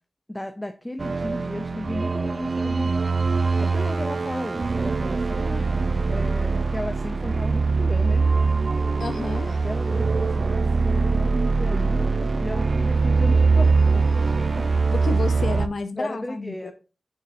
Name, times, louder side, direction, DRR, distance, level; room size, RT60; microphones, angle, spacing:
voice 1, 0.3-3.0 3.6-5.7 6.1-8.3 9.4-14.7 16.0-16.7, left 1 dB, 15° left, 7 dB, 0.5 m, -35 dB
sound 1, 1.0-15.7, right 4 dB, 50° right, 0.4 m, -22 dB
voice 2, 9.0-9.7 14.9-16.7, left 3 dB, 85° left, 10 dB, 0.6 m, -30 dB
6.4 x 6.3 x 2.7 m, 0.34 s
wide cardioid pair, 115°, 0 cm